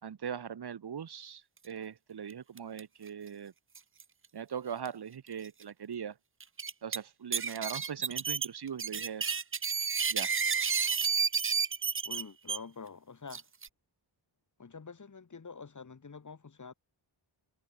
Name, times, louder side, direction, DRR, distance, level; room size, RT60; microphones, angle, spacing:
voice 1, 0.0-3.5 4.3-6.2 6.8-9.3 10.1-10.3, right 8 dB, 55° right, 2.0 m, -40 dB
sound 1, 2.6-2.8 3.1-3.2 3.7-4.0 4.9-5.0 5.4-5.5 6.4-7.0 7.3-12.6 13.3-13.7, right 6 dB, 30° right, 0.7 m, -31 dB
voice 2, 12.0-13.5 14.6-16.7, left 5 dB, 40° left, 6.2 m, -47 dB
wide cardioid pair, 140°, 46 cm